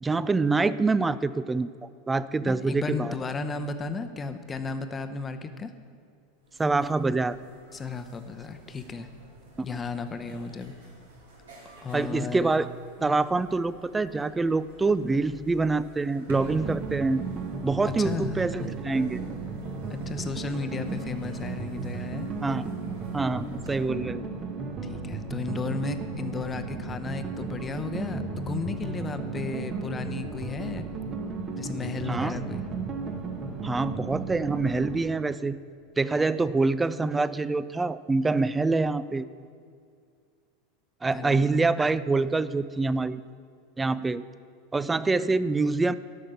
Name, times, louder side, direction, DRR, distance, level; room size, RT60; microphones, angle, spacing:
voice 1, 0.0-3.1 6.6-7.4 9.7-9.8 11.9-12.7 13.0-17.2 17.6-19.2 22.4-22.6 23.1-24.2 32.1-32.4 33.6-35.6 36.0-39.3 41.0-43.2 43.8-44.2 44.7-45.9, right 3 dB, 15° right, 16 dB, 0.3 m, -25 dB
voice 2, 2.5-5.7 7.7-9.1 9.6-10.7 11.8-12.5 13.0-13.2 18.0-18.7 19.9-22.3 24.8-30.9 31.5-32.6 41.1-41.6, left 4 dB, 20° left, 8 dB, 0.8 m, -34 dB
sound 1, 6.1-6.2 6.4-23.8, right 1 dB, 70° right, 2.0 m, -53 dB
sound 2, 16.3-35.0, right 4 dB, 35° right, 1.1 m, -34 dB
12.0 x 6.3 x 6.8 m, 2.2 s
figure-of-eight pair, 85°, 0 cm